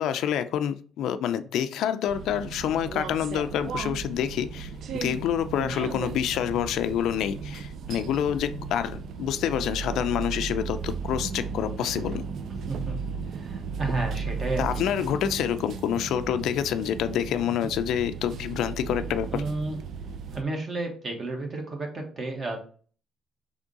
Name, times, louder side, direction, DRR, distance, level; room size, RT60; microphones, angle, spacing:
voice 1, 0.0-12.2 14.6-19.4, left 9 dB, 70° left, 11 dB, 0.4 m, -27 dB
sound 1, 2.1-20.4, right 5 dB, 60° right, 0.4 m, -35 dB
voice 2, 12.5-13.0 13.3-14.8 19.3-19.8 20.3-22.6, right 2 dB, 35° right, 3 dB, 1.3 m, -32 dB
3.6 x 3.5 x 3.9 m, 0.42 s
cardioid pair, 130°, 0 cm